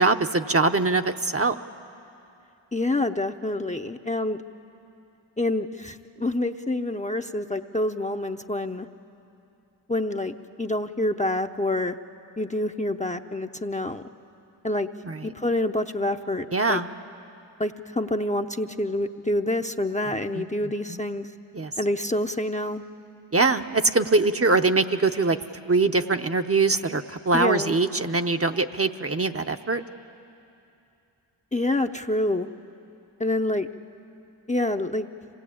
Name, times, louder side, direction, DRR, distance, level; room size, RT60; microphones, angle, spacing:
voice 1, 0.0-1.6 15.0-15.3 16.5-16.9 20.1-21.0 21.5-21.7 23.3-29.8, right 3 dB, 30° right, 7 dB, 0.8 m, -23 dB
voice 2, 2.7-4.4 5.4-8.9 9.9-12.0 12.4-14.0 14.6-14.9 15.2-16.8 17.6-21.3 21.8-22.8 27.3-27.7 31.5-32.5 33.2-33.7 34.5-35.1, left 1 dB, 15° left, 5 dB, 0.7 m, -27 dB
26.0 x 18.5 x 8.6 m, 2.7 s
cardioid pair, 50°, 46 cm